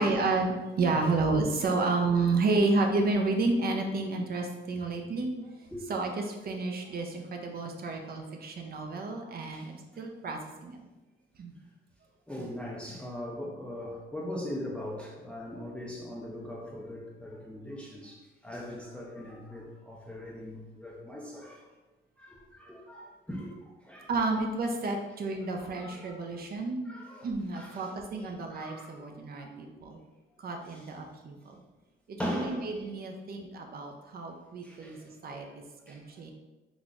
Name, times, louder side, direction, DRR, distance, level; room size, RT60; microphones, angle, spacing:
voice 1, 0.0-5.3 5.9-10.8 11.4-11.5 24.1-26.8 27.2-30.0 30.4-31.5 32.1-35.0 35.2-36.3, right 3 dB, 50° right, 3 dB, 0.6 m, -31 dB
voice 2, 12.3-21.7 22.2-24.1 25.4-26.4 26.9-29.7 30.7-30.9 32.2-32.6 34.6-36.0, equal, 5° left, -4 dB, 0.5 m, -40 dB
3.9 x 2.9 x 2.4 m, 1.1 s
cardioid pair, 90°, 20 cm